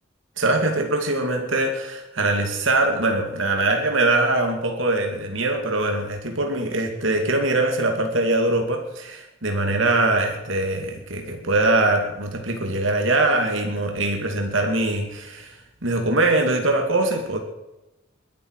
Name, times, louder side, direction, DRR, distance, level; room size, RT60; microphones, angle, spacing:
voice 1, 0.4-15.6 15.8-17.4, right 2 dB, 80° right, 3 dB, 2.4 m, -22 dB
21.5 x 12.0 x 4.8 m, 0.97 s
head